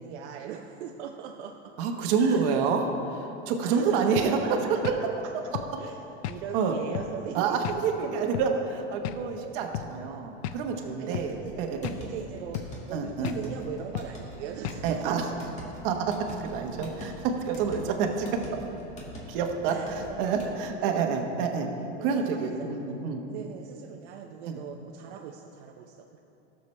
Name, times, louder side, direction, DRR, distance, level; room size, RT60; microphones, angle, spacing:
voice 1, 0.0-1.5 2.2-2.8 3.6-4.7 5.8-6.0 6.3-8.0 10.8-11.6 12.0-15.4 19.6-21.2 21.5-21.7 22.0-22.9 23.3-26.2, right 8 dB, 75° right, 2 dB, 0.7 m, -40 dB
voice 2, 1.8-2.8 3.2-4.4 4.8-4.9 6.5-6.8 7.3-11.9 12.9-13.4 14.8-15.2 15.8-18.3 19.3-21.7 22.0-23.2 24.5-24.6, right 6 dB, 55° right, 3 dB, 1.2 m, -28 dB
sound 1, 4.1-4.3 4.8-5.0 5.5-5.7 6.2-6.4 6.9-7.1 7.6-7.8 8.3-8.5 9.0-9.2 9.7-9.9 10.4-10.6 11.1-11.3 11.8-12.0 12.5-12.7 13.2-13.4 13.9-14.1 14.6-14.8, left 11 dB, 70° left, 0.5 m, -34 dB
sound 2, 11.3-20.6, equal, 20° left, 1.7 m, -44 dB
16.5 x 6.9 x 3.3 m, 3.0 s
supercardioid pair, 155°, 34 cm